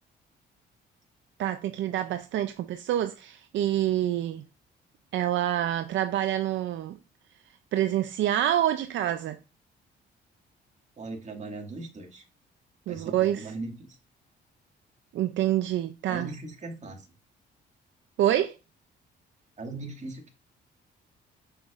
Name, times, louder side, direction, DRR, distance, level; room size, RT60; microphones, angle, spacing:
voice 1, 1.4-4.5 5.1-7.0 7.7-9.4 12.9-13.4 15.1-16.3 18.2-18.5, right 12 dB, 70° right, 0.5 m, -27 dB
voice 2, 11.0-12.2 12.9-14.0 16.1-17.1 19.6-20.3, right 2 dB, 35° right, 2.0 m, -39 dB
6.5 x 5.8 x 2.5 m
cardioid pair, 90°, 20 cm